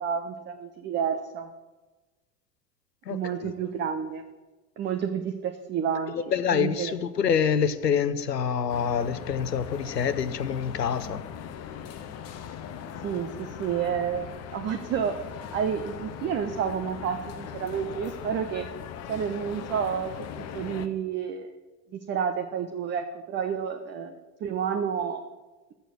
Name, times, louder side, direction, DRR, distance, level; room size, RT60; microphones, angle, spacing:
voice 1, 0.0-1.5 3.1-4.2 4.8-6.2 6.5-6.9 13.0-14.2 14.5-15.2 15.5-18.7 19.1-20.1 20.4-21.5 21.9-25.2, right 7 dB, 25° right, 0.6 m, -30 dB
voice 2, 3.1-3.5 6.1-11.3, left 7 dB, 90° left, 0.7 m, -26 dB
sound 1, 8.7-20.9, left 8 dB, 35° left, 0.8 m, -40 dB
6.9 x 6.4 x 7.3 m
figure-of-eight pair, 80°, 47 cm